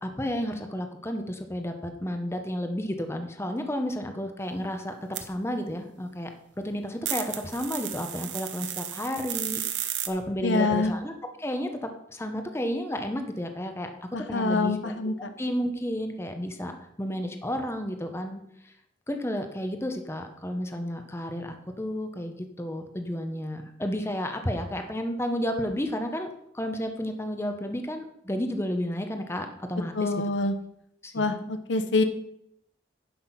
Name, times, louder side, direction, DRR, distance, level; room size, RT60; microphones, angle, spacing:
voice 1, 0.0-4.9 5.2-6.3 6.6-13.9 14.3-14.9 15.4-16.7 17.0-18.4 18.6-18.7 19.1-26.3 26.5-30.2 31.0-31.3, equal, 15° left, 6 dB, 1.0 m, -32 dB
sound 1, 5.1-5.2 7.1-10.1, right 11 dB, 75° right, 1.0 m, -33 dB
voice 2, 10.4-10.9 14.1-15.3 30.0-30.5 31.1-32.0, left 3 dB, 85° left, 9 dB, 0.9 m, -26 dB
10.5 x 6.0 x 5.8 m, 0.76 s
head